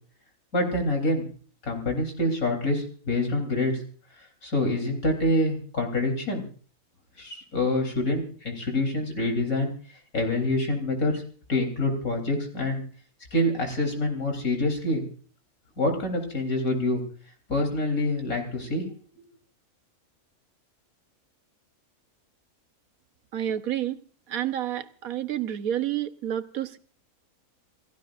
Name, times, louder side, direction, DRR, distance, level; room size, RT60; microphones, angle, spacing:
voice 1, 0.5-1.3 1.6-3.7 4.4-6.4 7.2-9.7 10.1-11.2 11.5-12.8 13.3-15.0 15.8-17.0 17.5-18.8, left 1 dB, 75° left, 3 dB, 4.2 m, -26 dB
voice 2, 23.3-24.0 24.3-26.8, right 11 dB, 85° right, 11 dB, 1.4 m, -29 dB
28.5 x 15.0 x 2.5 m, 0.43 s
omnidirectional pair, 1.5 m